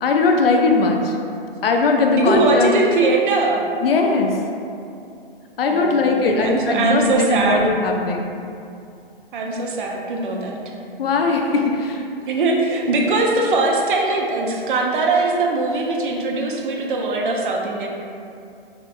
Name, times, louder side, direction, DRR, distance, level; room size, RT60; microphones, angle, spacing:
voice 1, 0.0-1.2 1.6-2.8 3.8-4.4 5.6-8.3 11.0-12.0, left 3 dB, 70° left, 2 dB, 0.5 m, -19 dB
voice 2, 2.1-3.7 5.6-7.6 9.3-10.6 12.3-17.9, right 3 dB, 55° right, 0 dB, 0.5 m, -21 dB
3.5 x 2.7 x 2.4 m, 2.6 s
hypercardioid pair, 140°, 30 cm